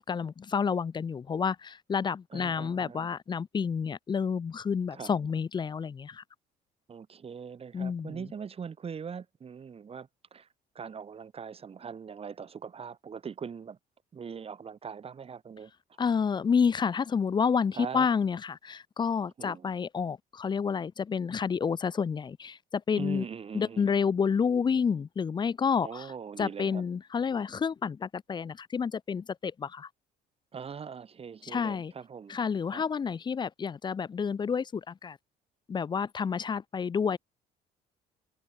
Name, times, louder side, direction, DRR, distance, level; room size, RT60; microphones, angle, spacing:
voice 1, 0.0-6.2 7.7-8.2 16.0-23.3 23.5-26.1 26.4-29.9 31.4-31.9 32.3-35.2 35.7-37.2, left 6 dB, 25° left, 0.6 m, -29 dB
voice 2, 2.3-3.1 4.9-5.1 6.9-10.5 10.7-13.8 14.1-15.7 17.7-18.1 19.4-19.7 23.0-23.9 25.8-26.8 30.5-32.4 32.7-32.8, right 6 dB, 35° right, 2.6 m, -41 dB
cardioid pair, 110°, 17 cm